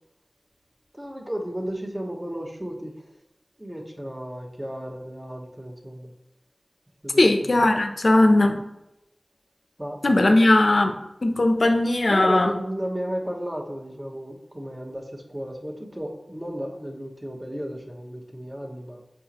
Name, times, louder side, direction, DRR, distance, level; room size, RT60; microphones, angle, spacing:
voice 1, 0.9-3.1 3.6-6.1 7.0-7.5 9.8-10.6 12.1-19.0, equal, 15° right, 1 dB, 1.0 m, -34 dB
voice 2, 7.2-8.6 10.0-11.0 11.2-12.5, left 2 dB, 65° left, 6 dB, 0.7 m, -18 dB
6.7 x 4.9 x 2.9 m, 0.89 s
wide cardioid pair, 60°, 0 cm